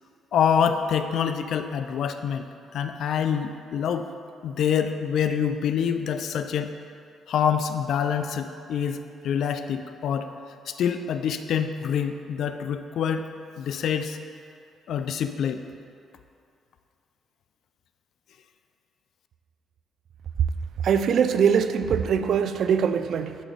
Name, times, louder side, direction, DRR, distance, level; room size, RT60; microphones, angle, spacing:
voice 1, 0.3-2.5 2.7-4.1 4.4-6.7 7.3-10.3 10.7-13.2 13.6-14.2 14.9-15.6, left 8 dB, 70° left, 9 dB, 0.3 m, -26 dB
voice 2, 20.8-23.4, right 7 dB, 65° right, 10 dB, 0.3 m, -22 dB
11.0 x 3.9 x 3.2 m, 2.5 s
cardioid pair, 90°, 0 cm